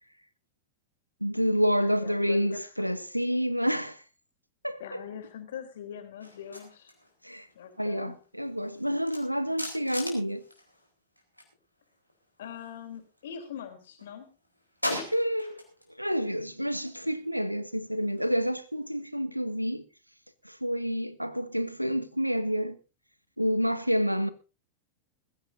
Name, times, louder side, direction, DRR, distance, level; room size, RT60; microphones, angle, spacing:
voice 1, 1.2-4.0 4.6-5.0 7.2-7.5 7.8-10.4 15.1-15.6 16.0-19.9 20.4-22.8 23.4-24.3, equal, 90° right, 1.1 m, -28 dB
voice 2, 1.8-2.9 4.8-6.9 7.5-8.2 12.4-14.3, left 8 dB, 60° left, 3.5 m, -42 dB
sound 1, 6.2-11.5 11.8-13.4 13.8-15.9 16.2-19.0, left 1 dB, 90° left, 4.1 m, -41 dB
20.5 x 15.5 x 2.7 m
figure-of-eight pair, 90°, 0 cm